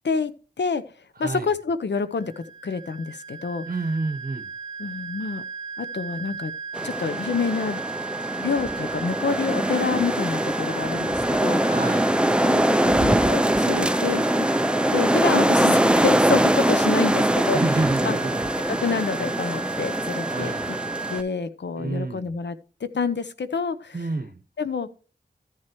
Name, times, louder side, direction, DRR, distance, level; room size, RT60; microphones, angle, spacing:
voice 1, 0.0-0.8 1.2-3.7 4.8-5.4 5.8-6.5 6.8-7.8 8.4-11.8 12.4-14.5 14.9-18.1 18.7-20.8 21.1-22.6 22.8-24.0 24.6-24.9, left 5 dB, 80° left, 0.8 m, -28 dB
sound 1, 2.1-21.2, right 5 dB, 45° left, 2.0 m, -35 dB
voice 2, 3.6-4.5 11.6-12.2 17.5-18.5 20.3-20.7 21.8-22.4 23.9-24.4, right 3 dB, 55° right, 1.1 m, -29 dB
sound 2, 6.7-21.2, right 1 dB, 5° right, 0.5 m, -23 dB
13.5 x 7.5 x 3.1 m
wide cardioid pair, 50°, 18 cm